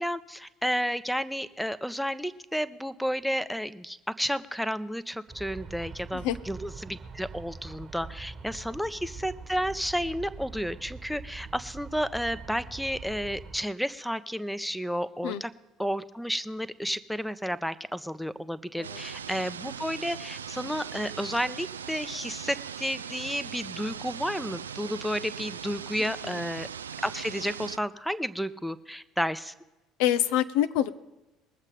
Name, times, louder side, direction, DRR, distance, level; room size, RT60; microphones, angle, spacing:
voice 1, 0.0-15.5 15.8-26.7 27.0-29.5, equal, ahead, 14 dB, 0.7 m, -32 dB
Aircraft, 5.3-13.6, right 4 dB, 35° right, 1.3 m, -43 dB
sound 1, 18.8-27.8, right 7 dB, 85° right, 0.3 m, -40 dB
voice 2, 26.0-26.4 30.0-30.9, left 12 dB, 65° left, 12 dB, 0.6 m, -27 dB
21.5 x 7.5 x 4.9 m, 1.0 s
figure-of-eight pair, 60°, 0 cm